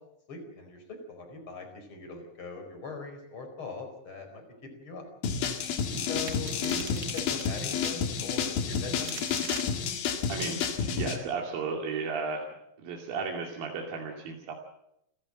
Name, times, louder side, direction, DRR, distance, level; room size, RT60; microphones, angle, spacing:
voice 1, 0.3-4.4 4.7-5.1 6.1-9.5, left 3 dB, 35° left, 4 dB, 5.3 m, -41 dB
sound 1, 5.2-11.2, left 6 dB, 85° left, 3.7 m, -30 dB
sound 2, 6.3-8.0 8.7-9.7, right 5 dB, 45° right, 1.3 m, -41 dB
voice 2, 10.3-12.5 12.8-14.5, right 4 dB, 80° right, 1 dB, 4.2 m, -34 dB
29.5 x 14.5 x 7.8 m, 0.79 s
omnidirectional pair, 4.1 m